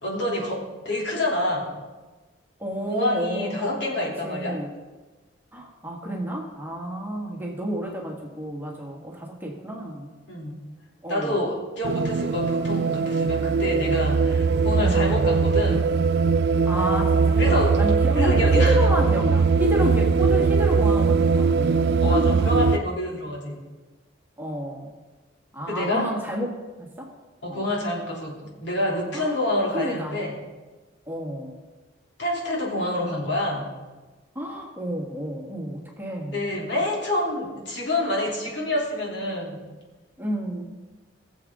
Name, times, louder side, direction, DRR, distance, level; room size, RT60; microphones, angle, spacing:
voice 1, 0.0-1.7 2.9-4.6 10.3-10.6 11.1-15.9 17.4-17.8 18.1-18.8 22.0-23.6 25.7-26.1 27.4-30.4 32.2-33.7 36.3-39.6, left 1 dB, 65° left, -3 dB, 3.0 m, -27 dB
voice 2, 2.6-3.7 4.2-4.7 5.5-10.1 11.0-11.4 14.8-15.2 16.6-22.7 24.4-24.9 25.5-27.1 27.5-27.6 29.1-29.4 29.7-30.2 31.1-31.6 34.3-36.4 40.2-40.8, equal, 10° right, -1 dB, 1.6 m, -30 dB
sound 1, 11.8-22.8, right 5 dB, 60° right, 0.4 m, -20 dB
21.0 x 7.3 x 3.7 m, 1.2 s
head